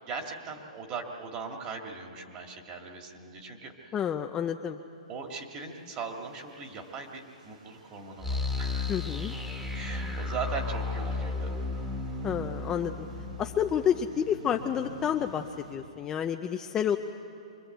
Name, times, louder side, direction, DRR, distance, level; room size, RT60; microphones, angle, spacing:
voice 1, 0.0-4.0 5.1-9.0 9.7-11.5, right 4 dB, 25° right, 2 dB, 2.1 m, -39 dB
voice 2, 3.9-4.8 8.9-9.4 12.2-13.1 13.4-17.0, left 8 dB, 15° left, 5 dB, 0.5 m, -29 dB
sound 1, 5.4-15.8, right 2 dB, 85° right, 6.0 m, -52 dB
sound 2, 8.2-15.0, left 3 dB, 5° right, 1.6 m, -34 dB
24.5 x 22.0 x 8.0 m, 2.6 s
hypercardioid pair, 160°, 4 cm